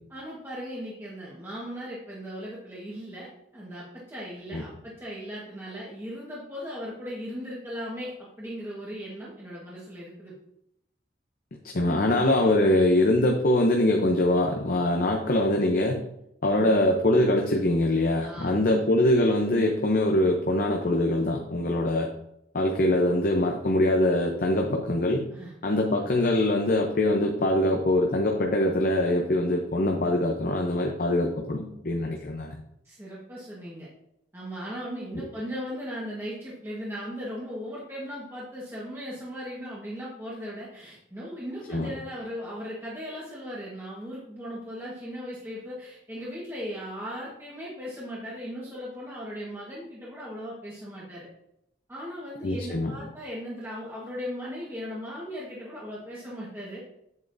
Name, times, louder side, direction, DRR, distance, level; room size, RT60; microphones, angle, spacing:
voice 1, 0.1-10.3 16.5-16.7 18.2-18.8 25.3-25.5 26.0-26.1 32.8-33.9 34.3-51.3 51.9-56.8, equal, 15° right, -7 dB, 1.3 m, -38 dB
voice 2, 11.7-16.0 16.4-22.1 22.5-25.3 25.6-32.6 35.1-35.3 41.7-41.9 52.4-52.9, left 1 dB, 50° left, 2 dB, 0.7 m, -23 dB
8.0 x 7.4 x 2.6 m, 0.81 s
head